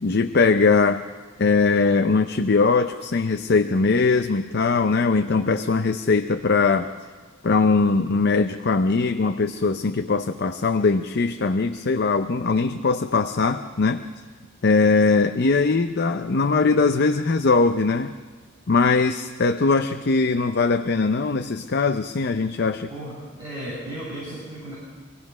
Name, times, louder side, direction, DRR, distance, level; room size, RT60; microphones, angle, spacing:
voice 1, 0.0-1.0 1.4-6.9 7.4-14.0 14.6-18.1 18.7-22.9, left 4 dB, 55° left, 8 dB, 0.6 m, -21 dB
voice 2, 22.9-24.8, right 1 dB, 20° right, -9 dB, 7.8 m, -35 dB
25.0 x 17.0 x 6.1 m, 1.5 s
head